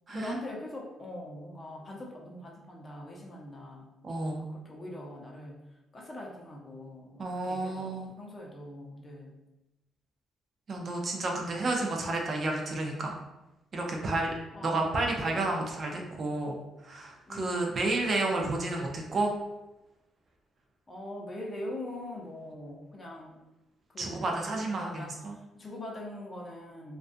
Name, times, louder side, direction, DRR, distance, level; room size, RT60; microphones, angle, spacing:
voice 1, 0.1-3.9 4.4-5.6 5.9-9.4 14.5-15.0 15.2-15.4 17.3-18.1 20.9-23.4 23.9-27.0, left 1 dB, 30° left, -1 dB, 0.6 m, -42 dB
voice 2, 4.0-4.5 7.2-8.1 10.7-13.2 13.7-14.3 14.6-16.6 16.8-19.3 24.0-25.3, right 2 dB, 45° right, 1 dB, 0.5 m, -31 dB
2.3 x 2.2 x 2.5 m, 0.98 s
cardioid pair, 90°, 0 cm